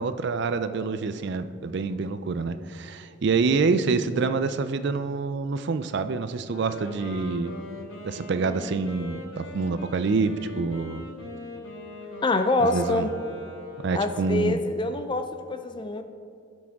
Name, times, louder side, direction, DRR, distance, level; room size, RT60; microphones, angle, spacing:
voice 1, 0.0-7.5 8.0-11.0 12.7-13.1 13.8-14.6, right 4 dB, 55° right, 11 dB, 0.4 m, -26 dB
Wind instrument woodwind instrument, 6.4-14.4, left 2 dB, 85° left, 2.6 m, -41 dB
voice 2, 12.2-13.1 13.9-16.0, left 2 dB, 25° left, 8 dB, 0.4 m, -25 dB
16.5 x 6.2 x 3.6 m, 2.3 s
head